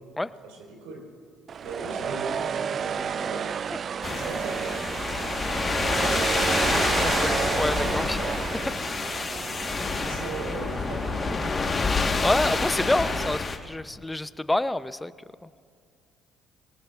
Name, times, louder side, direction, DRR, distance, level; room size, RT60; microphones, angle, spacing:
voice 1, 0.4-1.0 1.6-3.4 4.1-4.8 10.0-11.7, right 3 dB, 80° right, -1 dB, 4.2 m, -38 dB
sound 1, 1.5-13.4, right 7 dB, 50° right, 0.3 m, -31 dB
sound 2, 4.0-13.6, left 4 dB, 35° left, 1.3 m, -28 dB
voice 2, 7.0-8.2 12.2-15.1, left 1 dB, 10° left, 15 dB, 0.5 m, -27 dB
22.5 x 19.0 x 2.4 m, 2.2 s
hypercardioid pair, 60°, 0 cm